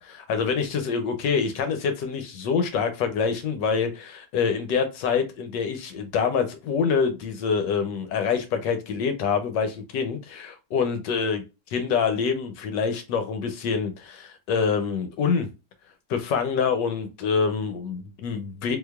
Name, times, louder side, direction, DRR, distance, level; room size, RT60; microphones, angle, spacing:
voice 1, 0.0-11.4 11.7-15.5 16.1-18.8, left 6 dB, 75° left, 1.1 m, -26 dB
3.8 x 2.9 x 2.2 m
omnidirectional pair, 2.2 m